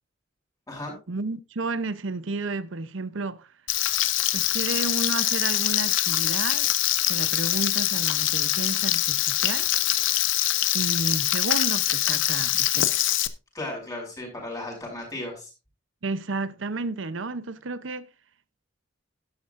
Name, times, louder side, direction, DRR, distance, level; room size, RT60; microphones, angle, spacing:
voice 1, 1.1-3.5 4.3-6.7 7.0-9.7 10.7-13.2 16.0-18.1, right 3 dB, 85° right, 0.8 m, -32 dB
Frying (food), 3.7-13.3, left 14 dB, 85° left, 0.8 m, -24 dB
voice 2, 13.5-15.5, left 2 dB, 20° left, 6.0 m, -35 dB
12.5 x 11.0 x 2.5 m
head